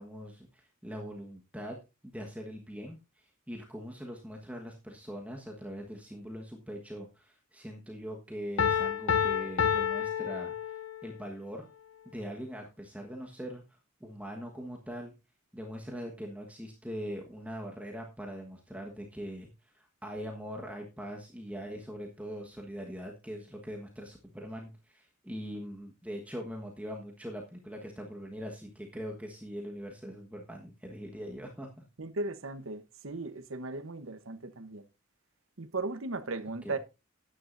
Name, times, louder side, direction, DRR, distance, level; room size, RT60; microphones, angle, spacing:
voice 1, 0.0-1.8 2.0-10.7 11.0-11.7 12.1-13.6 14.0-15.1 15.5-19.5 19.7-31.8 36.6-36.7, equal, 5° right, 1.3 m, -42 dB
Piano, 8.6-11.2, left 8 dB, 80° left, 0.6 m, -29 dB
voice 2, 32.0-34.8 35.6-36.8, right 3 dB, 75° right, 1.0 m, -37 dB
13.5 x 9.9 x 2.6 m
head